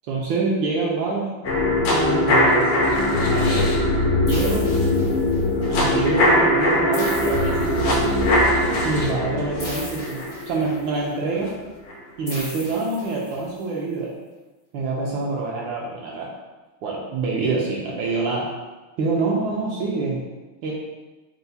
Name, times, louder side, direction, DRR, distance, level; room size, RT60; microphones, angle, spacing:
voice 1, 0.1-1.3 1.9-2.7 3.3-3.7 4.2-4.7 5.7-8.1 8.8-11.5 12.2-14.1 14.7-16.3 16.8-18.5 19.0-20.2 20.6-20.7, right 3 dB, 75° right, -3 dB, 1.2 m, -26 dB
sound 1, 1.4-11.5 11.9-12.0, left 1 dB, 75° left, 1.6 m, -21 dB
sound 2, 4.3-5.6 6.9-8.3 9.6-11.0 12.3-13.6, left 1 dB, 35° left, 0.6 m, -38 dB
4.5 x 2.1 x 4.0 m, 1.2 s
omnidirectional pair, 2.4 m